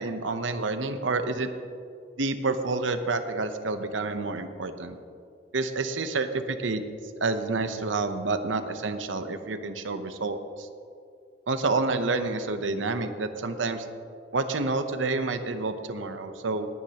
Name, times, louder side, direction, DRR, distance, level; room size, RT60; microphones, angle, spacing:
voice 1, 0.0-1.5 2.2-5.0 5.5-6.8 7.2-10.7 11.5-13.8 14.3-16.7, right 3 dB, 85° right, 9 dB, 0.8 m, -29 dB
20.0 x 9.4 x 2.9 m, 2.3 s
head